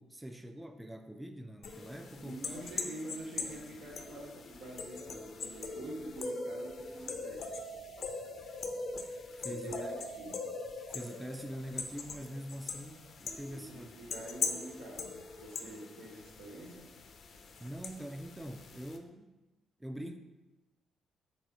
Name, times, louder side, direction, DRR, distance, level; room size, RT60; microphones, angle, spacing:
voice 1, 0.0-2.4 9.3-9.9 10.9-13.9 17.6-19.4 19.8-20.2, equal, 10° right, 6 dB, 0.3 m, -44 dB
sound 1, 1.6-19.0, left 4 dB, 60° left, 0.4 m, -42 dB
voice 2, 2.1-7.6 9.4-10.5 13.5-16.9, right 1 dB, 85° right, -3 dB, 1.2 m, -46 dB
4.0 x 2.7 x 4.7 m, 1.1 s
cardioid pair, 80°, 0 cm